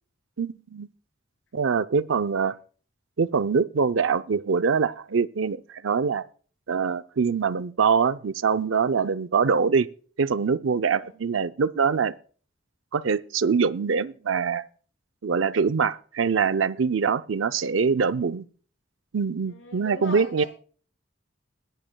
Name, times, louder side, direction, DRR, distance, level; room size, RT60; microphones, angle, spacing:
voice 1, 0.4-0.9 1.5-2.5 3.2-6.2 6.7-9.9 10.2-12.1 12.9-14.6 15.2-18.5 19.1-20.4, right 5 dB, 80° right, 0.6 m, -24 dB
voice 2, 19.5-20.5, left 2 dB, 80° left, 5.5 m, -40 dB
21.0 x 11.5 x 2.2 m
head